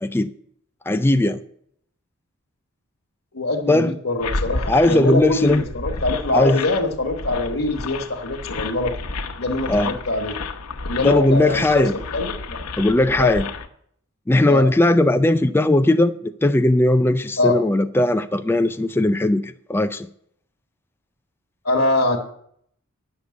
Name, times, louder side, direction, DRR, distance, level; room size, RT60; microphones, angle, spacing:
voice 1, 0.9-1.4 3.7-3.9 4.7-5.6 6.3-6.6 9.7-9.9 11.0-11.9 12.8-13.4 14.3-20.1, left 1 dB, 10° left, 0.3 m, -18 dB
voice 2, 3.3-9.0 9.4-10.4 10.8-12.6 13.2-13.3 14.5-14.7 17.4-17.6 21.6-22.2, left 2 dB, 60° left, 1.2 m, -23 dB
sound 1, 4.2-13.7, left 3 dB, 80° left, 0.9 m, -31 dB
10.0 x 6.7 x 8.3 m
head